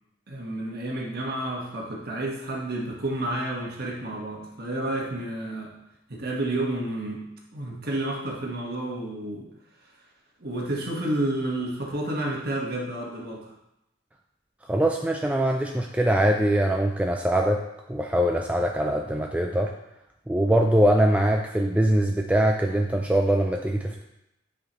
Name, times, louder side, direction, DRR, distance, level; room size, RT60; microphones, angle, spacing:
voice 1, 0.3-5.7 6.1-7.2 7.5-9.5 10.4-13.5, right 1 dB, 50° right, -1 dB, 1.4 m, -30 dB
voice 2, 14.7-17.6 17.9-19.7 20.3-24.0, right 1 dB, 5° right, 1 dB, 0.3 m, -22 dB
9.2 x 5.0 x 3.1 m, 0.88 s
head